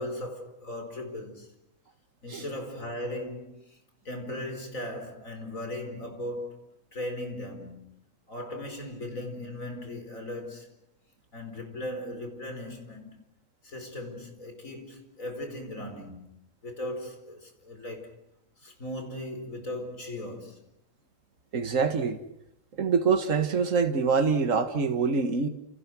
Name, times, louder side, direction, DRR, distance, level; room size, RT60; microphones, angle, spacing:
voice 1, 0.0-1.5 2.2-3.8 4.0-6.6 6.9-8.0 8.3-10.8 11.3-13.3 13.6-16.3 16.6-18.2 18.6-20.6, left 1 dB, 85° left, 5.1 m, -38 dB
voice 2, 21.5-22.2 22.8-25.5, right 5 dB, 75° right, 2.1 m, -25 dB
30.0 x 29.0 x 6.2 m
omnidirectional pair, 1.4 m